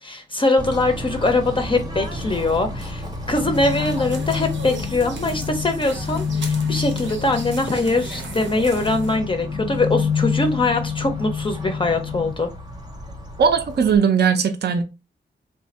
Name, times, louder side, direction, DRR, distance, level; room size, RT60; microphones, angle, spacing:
voice 1, 0.0-12.5, left 2 dB, 25° left, 0.4 m, -22 dB
Bird / Train, 0.6-14.0, equal, 20° right, 0.6 m, -34 dB
sound 1, 3.4-12.3, left 7 dB, 80° left, 0.5 m, -28 dB
sound 2, 3.5-9.2, right 4 dB, 90° right, 0.8 m, -38 dB
voice 2, 13.4-14.8, right 6 dB, 60° right, 0.5 m, -18 dB
3.6 x 2.4 x 4.0 m
wide cardioid pair, 180°, 19 cm